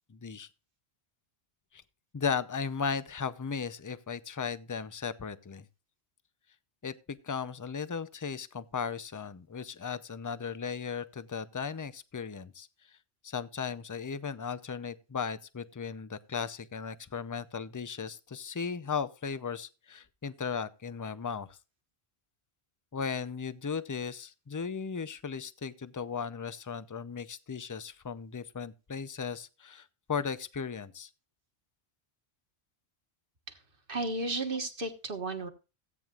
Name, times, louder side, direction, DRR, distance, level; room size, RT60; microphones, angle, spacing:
voice 1, 0.1-0.5 1.7-1.8 2.1-5.7 6.8-13.0 13.2-21.6 22.9-31.1, left 6 dB, 25° left, 0.4 m, -36 dB
voice 2, 33.9-35.5, right 2 dB, 55° right, 1.6 m, -33 dB
17.0 x 9.0 x 2.4 m
omnidirectional pair, 1.1 m